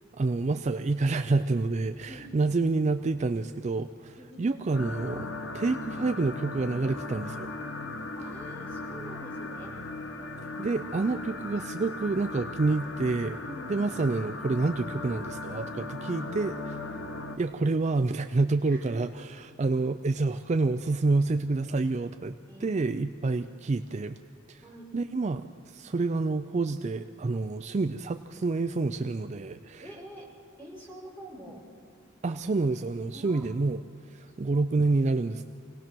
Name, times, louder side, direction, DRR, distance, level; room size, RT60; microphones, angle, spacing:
voice 1, 0.2-7.5 10.6-13.4 13.7-16.8 17.4-22.4 22.6-24.2 24.5-24.6 24.9-29.9 32.2-33.8 34.1-35.5, right 3 dB, 35° right, 9 dB, 0.4 m, -28 dB
voice 2, 4.2-4.5 8.2-9.7 10.4-10.8 13.4-13.9 18.7-19.0 22.5-22.8 24.6-25.0 29.8-30.3 30.6-31.7 33.1-33.5 34.3-34.5, right 1 dB, 10° left, -5 dB, 5.3 m, -46 dB
sound 1, 4.7-17.4, left 2 dB, 60° left, 1.3 m, -38 dB
25.0 x 18.0 x 6.1 m, 2.4 s
head